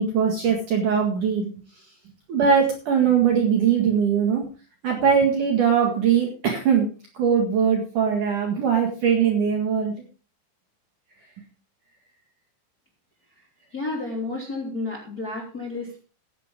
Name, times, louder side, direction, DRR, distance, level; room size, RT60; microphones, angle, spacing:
voice 1, 0.0-1.5 2.3-4.5 4.8-6.9 7.2-9.9, right 7 dB, 55° right, 1 dB, 2.7 m, -21 dB
voice 2, 13.7-16.0, left 2 dB, 25° left, -1 dB, 2.8 m, -31 dB
15.0 x 10.5 x 3.6 m, 0.36 s
omnidirectional pair, 5.5 m